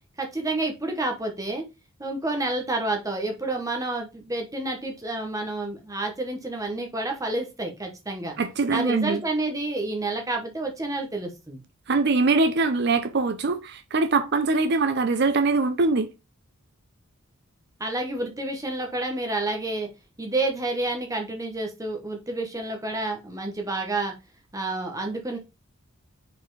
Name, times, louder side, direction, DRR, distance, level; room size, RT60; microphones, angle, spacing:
voice 1, 0.2-1.6 2.0-8.3 8.7-11.6 17.8-19.9 20.2-24.1 24.5-25.4, right 2 dB, 15° right, 1.0 m, -29 dB
voice 2, 8.4-9.2 11.9-16.1, right 3 dB, 50° right, 0.6 m, -23 dB
4.8 x 4.2 x 4.6 m
head